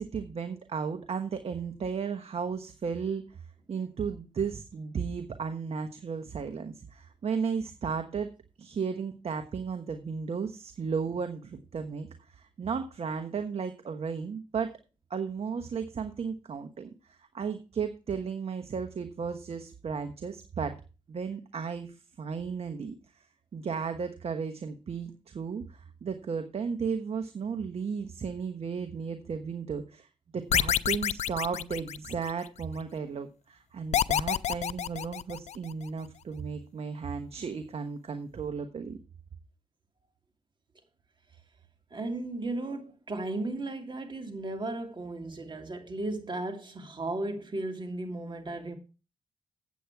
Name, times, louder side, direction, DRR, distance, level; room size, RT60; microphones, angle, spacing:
voice 1, 0.0-3.4 3.7-8.3 8.6-14.8 15.1-20.8 21.1-23.2 23.5-30.1 30.3-39.0, right 6 dB, 55° right, 1.2 m, -34 dB
sound 1, 30.5-32.5 33.9-35.7, left 10 dB, 65° left, 0.4 m, -28 dB
voice 2, 41.9-48.8, right 2 dB, 40° right, 2.6 m, -35 dB
8.3 x 8.3 x 4.7 m
cardioid pair, 65°, 12 cm